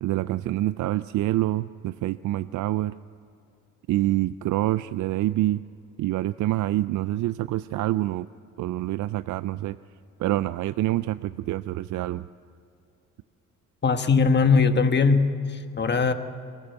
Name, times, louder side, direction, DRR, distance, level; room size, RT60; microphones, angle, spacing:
voice 1, 0.0-2.9 3.9-5.6 6.0-8.3 8.6-9.8 10.2-12.3, right 15 dB, 75° right, 14 dB, 0.5 m, -26 dB
voice 2, 13.8-16.1, left 4 dB, 35° left, 8 dB, 1.5 m, -20 dB
23.0 x 15.0 x 8.1 m, 2.6 s
cardioid pair, 90°, 30 cm